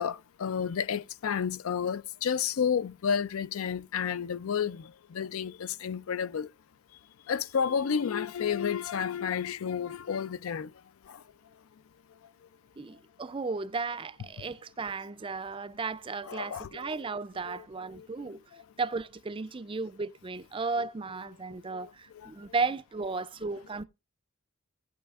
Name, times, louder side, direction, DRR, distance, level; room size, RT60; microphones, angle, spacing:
voice 1, 0.0-6.5 7.3-10.7 11.1-11.2 16.3-16.9 17.5-17.6 18.0-18.3 21.7-21.9 22.2-22.3, left 7 dB, 75° left, 0.4 m, -31 dB
voice 2, 12.8-18.4 18.8-23.8, right 4 dB, 25° right, 0.4 m, -34 dB
15.5 x 8.7 x 2.4 m
head